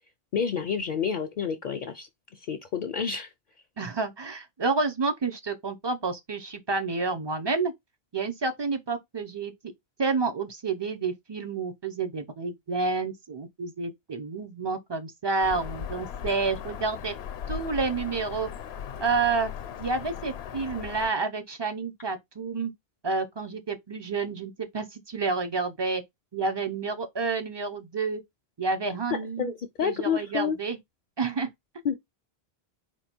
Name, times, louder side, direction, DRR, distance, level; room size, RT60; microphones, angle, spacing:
voice 1, 0.3-2.1 2.5-3.3 29.4-30.6 31.8-32.0, left 7 dB, 60° left, 0.6 m, -29 dB
voice 2, 3.8-7.7 8.1-9.5 10.0-17.1 17.5-18.5 19.0-19.5 19.8-22.7 23.0-26.0 26.3-28.2 28.6-29.5 29.8-30.8 31.2-31.5, right 4 dB, 35° right, 0.5 m, -29 dB
Bird vocalization bird call bird song, 15.4-21.1, left 9 dB, 80° left, 0.8 m, -38 dB
4.4 x 2.3 x 4.3 m
omnidirectional pair, 1.1 m